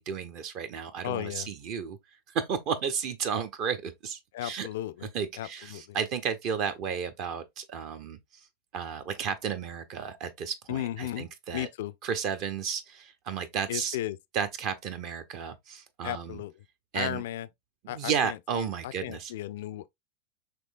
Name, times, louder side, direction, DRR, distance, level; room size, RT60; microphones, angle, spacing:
voice 1, 0.0-2.0 2.3-4.7 5.1-8.5 8.7-11.7 12.0-14.0 14.3-16.4 16.9-17.2 17.8-19.3, right 7 dB, 40° right, 0.6 m, -33 dB
voice 2, 1.0-1.5 4.3-5.1 5.4-6.0 10.7-11.9 13.7-14.2 16.0-16.5 16.9-17.5 17.9-19.9, left 13 dB, 55° left, 0.3 m, -35 dB
6.1 x 3.2 x 2.4 m
figure-of-eight pair, 90°, 0 cm